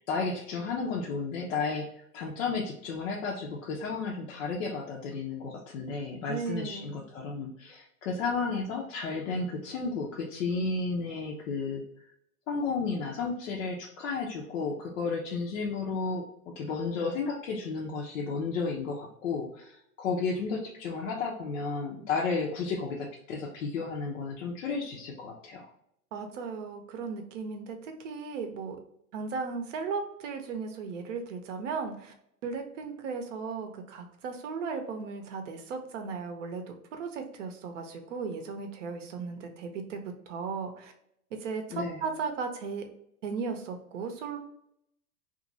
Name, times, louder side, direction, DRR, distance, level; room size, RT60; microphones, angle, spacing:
voice 1, 0.1-11.8 12.5-16.2 16.6-25.7 41.7-42.0, left 4 dB, 55° left, -2 dB, 0.7 m, -33 dB
voice 2, 6.3-7.0 26.1-28.8 29.1-32.1 32.4-40.9 41.3-42.8 43.2-44.4, right 5 dB, 50° right, 5 dB, 0.7 m, -36 dB
2.8 x 2.5 x 2.7 m, 0.75 s
hypercardioid pair, 115°, 47 cm